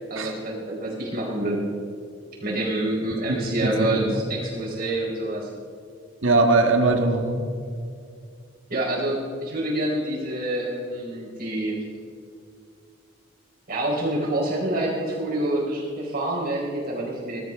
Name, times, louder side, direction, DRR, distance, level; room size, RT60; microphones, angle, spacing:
voice 1, 0.1-1.7 2.4-5.5 8.7-11.8 13.7-17.4, right 1 dB, 50° right, -3 dB, 4.3 m, -27 dB
voice 2, 3.6-4.2 6.2-7.5, right 2 dB, 90° right, 4 dB, 1.6 m, -21 dB
20.5 x 12.5 x 3.7 m, 2.3 s
head